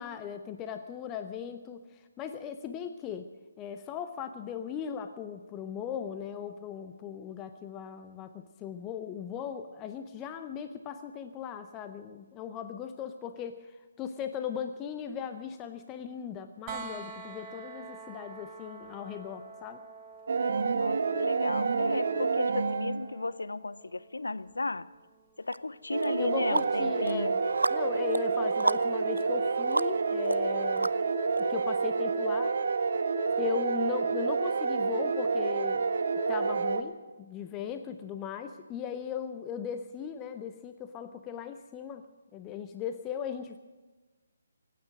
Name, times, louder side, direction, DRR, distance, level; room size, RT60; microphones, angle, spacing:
voice 1, 0.0-3.3 3.6-19.8 26.2-27.4 27.7-31.0 31.4-32.5 33.4-42.1 42.3-43.6, left 8 dB, 15° left, 8 dB, 0.6 m, -38 dB
sound 1, 16.7-28.5 30.4-30.5, right 5 dB, 20° right, 1.2 m, -48 dB
sound 2, 20.3-23.2 25.9-36.8, right 4 dB, 50° right, 1.1 m, -29 dB
voice 2, 20.7-24.9 25.4-27.4, left 3 dB, 70° left, 17 dB, 0.6 m, -35 dB
sound 3, 25.5-25.6 26.0-31.4, right 2 dB, 75° right, 0.4 m, -33 dB
24.5 x 9.2 x 6.4 m, 1.3 s
figure-of-eight pair, 140°, 0 cm